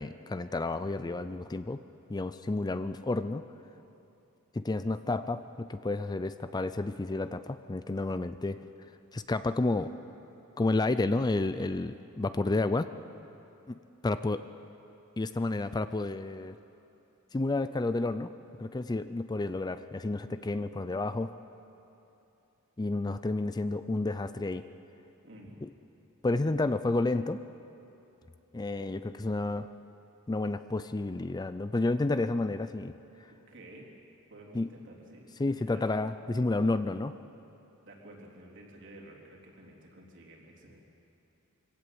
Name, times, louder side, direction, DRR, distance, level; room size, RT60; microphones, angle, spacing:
voice 1, 0.0-1.8 2.1-3.4 4.5-8.6 9.1-9.9 10.6-12.9 13.7-14.4 15.2-16.6 17.3-18.3 18.6-21.3 22.8-24.6 25.6-25.7 26.2-27.4 28.5-29.7 30.3-32.9 34.5-34.7 35.4-37.1, left 2 dB, 20° left, 11 dB, 0.4 m, -30 dB
voice 2, 25.2-25.6 33.3-33.9 34.3-35.2 35.6-35.9 37.9-40.8, right 1 dB, 60° right, -2 dB, 3.6 m, -51 dB
24.0 x 17.0 x 7.8 m, 2.9 s
head